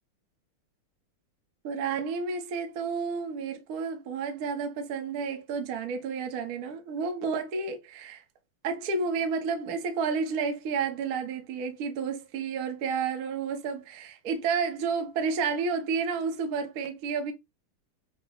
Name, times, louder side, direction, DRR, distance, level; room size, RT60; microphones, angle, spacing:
voice 1, 1.6-8.2 8.6-17.3, right 5 dB, 55° right, 1.1 m, -31 dB
6.1 x 2.1 x 3.4 m
omnidirectional pair, 2.4 m